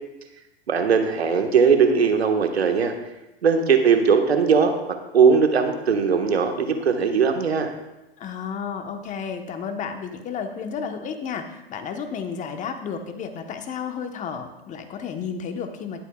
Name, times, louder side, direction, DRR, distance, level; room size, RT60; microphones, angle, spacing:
voice 1, 0.7-2.9 3.4-4.8 5.1-7.7, right 6 dB, 85° right, 4 dB, 1.6 m, -19 dB
voice 2, 8.2-16.0, left 6 dB, 25° left, 6 dB, 1.1 m, -32 dB
20.0 x 8.2 x 2.4 m, 0.98 s
hypercardioid pair, 110°, 31 cm